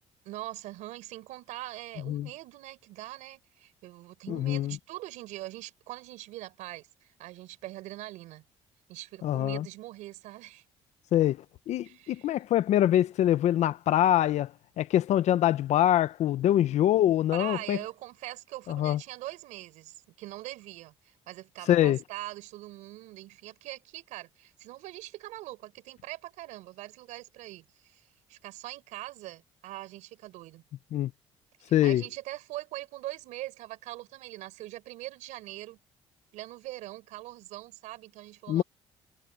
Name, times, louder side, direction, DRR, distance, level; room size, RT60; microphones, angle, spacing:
voice 1, 0.2-8.4 8.9-10.6 11.8-12.3 17.3-30.6 31.6-35.8 36.3-38.6, right 17 dB, 85° right, 4.8 m, -42 dB
voice 2, 4.3-4.8 9.2-9.6 11.1-11.4 11.7-14.5 14.8-17.8 18.7-19.0 21.7-22.0 30.9-31.1 31.7-32.0 38.5-38.6, left 12 dB, 65° left, 0.8 m, -24 dB
supercardioid pair, 85°, 12 cm